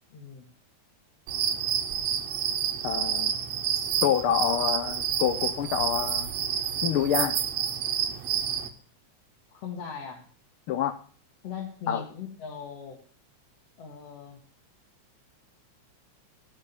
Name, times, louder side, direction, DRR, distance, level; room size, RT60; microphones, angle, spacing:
voice 1, 0.1-0.5 9.5-10.3 11.4-13.0 13.8-14.4, left 6 dB, 60° left, 0 dB, 2.3 m, -39 dB
sound 1, 1.3-8.7, right 9 dB, 75° right, 2.3 m, -29 dB
voice 2, 2.8-3.3 4.0-6.3 6.8-7.4 10.7-10.9 11.9-12.0, left 9 dB, 80° left, 9 dB, 1.2 m, -27 dB
16.5 x 5.7 x 6.8 m, 0.43 s
omnidirectional pair, 3.3 m